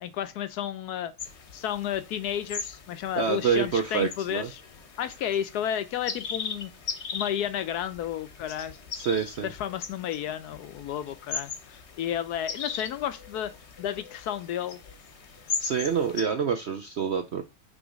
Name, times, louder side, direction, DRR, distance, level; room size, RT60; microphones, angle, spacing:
voice 1, 0.0-1.1 1.5-4.6 5.0-6.7 7.1-8.7 9.4-13.5 13.8-14.8, left 10 dB, 70° left, 1.0 m, -32 dB
sound 1, 1.2-16.2, left 5 dB, 45° left, 1.0 m, -39 dB
voice 2, 3.2-4.5 8.9-9.5 15.6-17.4, right 6 dB, 65° right, 0.6 m, -27 dB
6.1 x 3.3 x 5.1 m
omnidirectional pair, 1.9 m